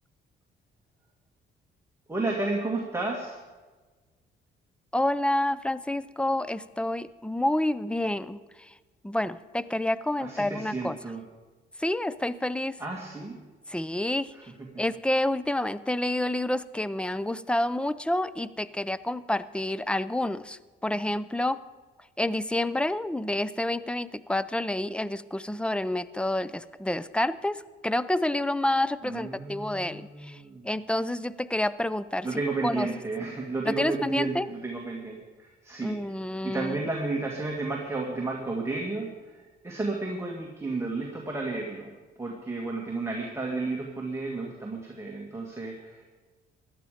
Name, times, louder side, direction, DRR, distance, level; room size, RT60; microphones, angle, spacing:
voice 1, 2.1-3.4 10.2-11.2 12.8-13.4 14.3-14.4 29.0-30.7 32.2-36.0 36.4-41.9 42.2-46.0, right 3 dB, 15° right, -1 dB, 2.2 m, -32 dB
voice 2, 4.9-8.7 9.0-11.0 11.8-12.8 13.7-14.3 14.8-21.6 22.2-30.4 30.6-32.3 32.6-32.9 33.7-34.5 35.8-36.8, left 1 dB, 5° left, 17 dB, 0.5 m, -28 dB
17.0 x 12.0 x 5.1 m, 1.3 s
cardioid pair, 90°, 20 cm